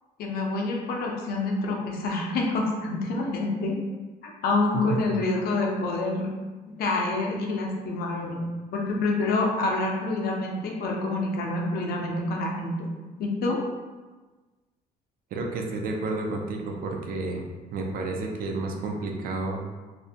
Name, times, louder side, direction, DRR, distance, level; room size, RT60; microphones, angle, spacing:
voice 1, 0.2-3.8 4.2-6.3 6.7-8.4 8.7-12.7 13.2-13.6, left 2 dB, 65° left, 0 dB, 0.5 m, -27 dB
voice 2, 15.3-17.5 17.7-19.7, right 3 dB, 60° right, 1 dB, 0.4 m, -30 dB
2.5 x 2.1 x 2.6 m, 1.3 s
cardioid pair, 110°, 17 cm